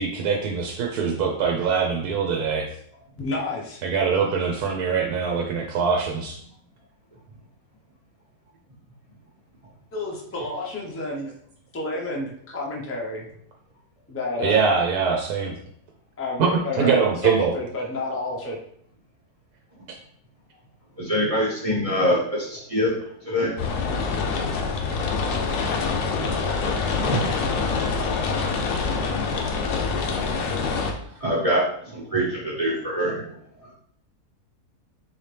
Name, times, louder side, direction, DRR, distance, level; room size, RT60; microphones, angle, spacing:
voice 1, 0.0-2.7 3.8-6.4 14.4-15.5 16.4-16.5 16.8-17.5 24.8-24.9 30.3-30.4, right 6 dB, 75° right, 1 dB, 1.1 m, -23 dB
voice 2, 3.2-3.8 9.9-11.3 11.7-13.2 14.1-14.6 16.2-17.0 17.2-18.5, left 2 dB, 20° left, -2 dB, 0.3 m, -30 dB
voice 3, 21.0-23.0 23.2-23.5 26.2-26.6 26.9-27.3 31.2-33.2, equal, 30° right, -5 dB, 0.7 m, -24 dB
sound 1, 23.6-30.9, left 4 dB, 80° left, 1.2 m, -25 dB
4.1 x 2.8 x 3.3 m, 0.65 s
omnidirectional pair, 1.7 m